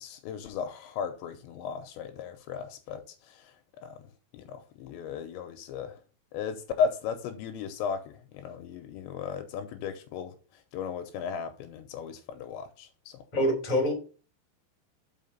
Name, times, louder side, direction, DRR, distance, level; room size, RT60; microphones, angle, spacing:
voice 1, 0.0-3.5 3.8-4.0 4.3-6.0 6.3-13.2, left 6 dB, 85° left, 2.9 m, -35 dB
voice 2, 13.3-13.9, equal, 15° left, 2.0 m, -25 dB
5.8 x 5.8 x 5.5 m
omnidirectional pair, 5.4 m